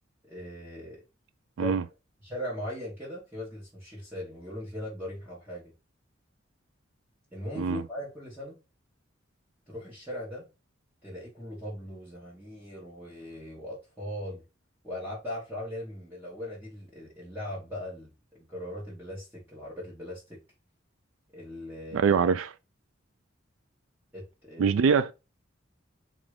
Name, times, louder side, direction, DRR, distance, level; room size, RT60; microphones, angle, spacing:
voice 1, 0.2-1.0 1.6-1.8 2.2-5.7 7.3-8.5 9.7-10.4 11.0-14.4 14.8-20.4 21.3-22.2 24.1-24.8, left 1 dB, 10° right, 1.5 m, -39 dB
voice 2, 21.9-22.5 24.6-25.1, right 6 dB, 80° right, 0.3 m, -23 dB
3.7 x 3.0 x 4.8 m
head